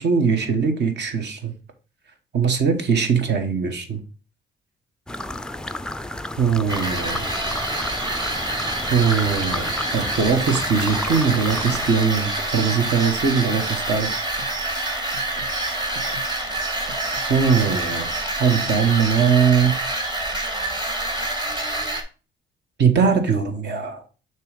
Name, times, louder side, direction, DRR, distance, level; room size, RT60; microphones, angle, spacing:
voice 1, 0.0-1.5 2.3-4.0 6.4-7.3 8.9-14.1 17.3-18.1 18.4-19.7 22.8-24.0, right 6 dB, 60° right, 6 dB, 1.3 m, -21 dB
sound 1, 5.1-11.9, left 1 dB, 5° left, 0.4 m, -32 dB
sound 2, 6.7-22.0, right 2 dB, 20° right, 1.4 m, -27 dB
sound 3, 11.1-19.1, right 8 dB, 85° right, 1.6 m, -39 dB
6.6 x 3.1 x 5.0 m, 0.35 s
cardioid pair, 90°, 20 cm